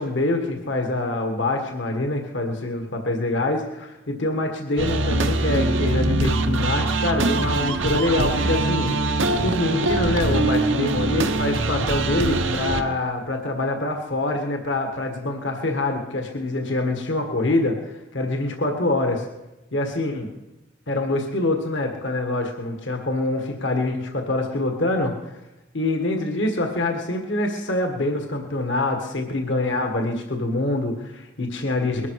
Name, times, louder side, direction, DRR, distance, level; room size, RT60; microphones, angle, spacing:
voice 1, 0.0-8.9 9.4-19.3 19.7-20.3 20.9-25.4 25.7-32.1, left 2 dB, 65° left, 4 dB, 1.7 m, -25 dB
sound 1, 4.8-12.8, right 2 dB, 70° right, 1.0 m, -23 dB
21.0 x 12.0 x 4.8 m, 1.0 s
head